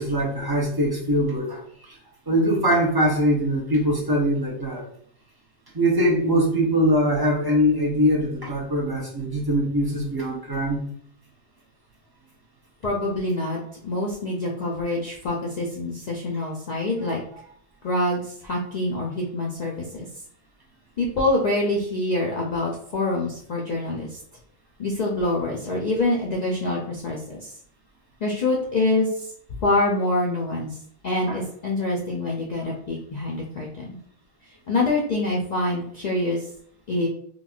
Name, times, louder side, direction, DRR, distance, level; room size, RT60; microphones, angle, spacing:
voice 1, 0.0-2.0 2.3-4.8 5.7-10.9 17.0-17.1 31.3-31.4, equal, 25° right, -3 dB, 0.6 m, -22 dB
voice 2, 12.8-17.2 17.8-20.1 21.0-24.2 24.8-27.5 28.2-29.3 29.6-30.8 31.0-34.0 34.7-36.4 36.9-37.1, left 2 dB, 60° left, -2 dB, 0.4 m, -25 dB
3.7 x 2.2 x 2.3 m, 0.64 s
omnidirectional pair, 1.2 m